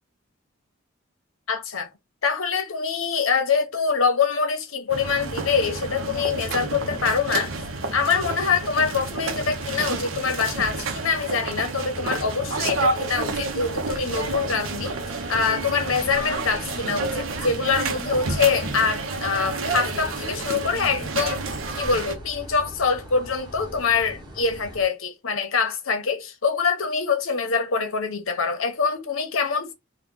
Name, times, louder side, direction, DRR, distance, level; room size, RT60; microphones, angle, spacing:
voice 1, 1.5-1.9 2.2-7.5 7.9-15.0 15.3-21.4 21.7-29.7, left 5 dB, 90° left, 0.9 m, -24 dB
sound 1, 4.9-22.2, right 3 dB, 85° right, 0.8 m, -30 dB
sound 2, 11.9-24.9, equal, 20° right, 1.1 m, -42 dB
2.9 x 2.3 x 3.6 m
head